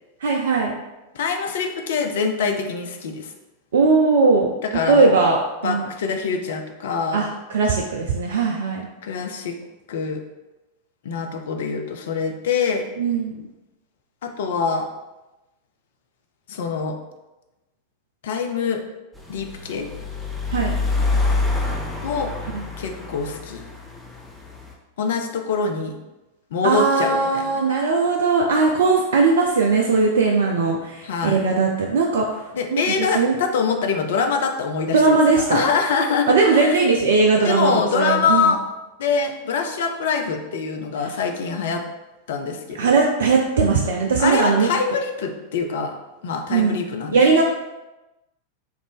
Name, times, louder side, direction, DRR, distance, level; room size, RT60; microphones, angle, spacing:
voice 1, 0.2-0.7 3.7-4.5 4.9-5.9 7.1-8.9 13.0-13.5 20.5-20.8 22.5-22.6 26.6-33.4 34.9-35.7 36.3-38.5 41.0-41.1 42.7-44.7 46.5-46.9 47.1-47.4, right 4 dB, 60° right, 0 dB, 0.3 m, -19 dB
voice 2, 1.1-3.3 4.6-5.1 5.6-7.3 9.0-9.6 9.9-10.2 11.0-12.9 14.2-14.9 16.5-17.0 18.2-18.8 19.3-19.9 22.0-22.3 22.8-23.6 25.0-26.0 26.5-27.5 31.0-31.4 32.5-36.7 37.4-38.6 39.0-41.8 42.3-43.0 44.2-46.0 46.2-47.2, left 5 dB, 60° left, 4 dB, 0.4 m, -24 dB
sound 1, 19.1-24.7, left 3 dB, ahead, 0.5 m, -26 dB
3.2 x 2.5 x 3.4 m, 1.0 s
figure-of-eight pair, 90°, 0 cm